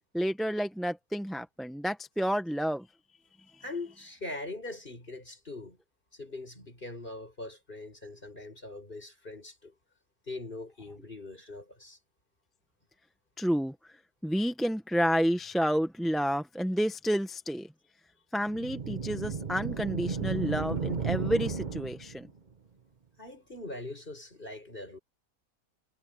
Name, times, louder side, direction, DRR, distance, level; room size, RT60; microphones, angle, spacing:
voice 1, 0.1-2.9 3.5-3.6 13.4-13.9 14.2-17.7 18.3-22.3, equal, ahead, 0.8 m, -30 dB
voice 2, 3.6-5.8 6.1-9.7 10.3-12.0 23.2-25.0, left 2 dB, 35° left, 6.9 m, -42 dB
sound 1, 18.5-22.3, right 5 dB, 30° right, 1.2 m, -33 dB
omnidirectional pair, 1.6 m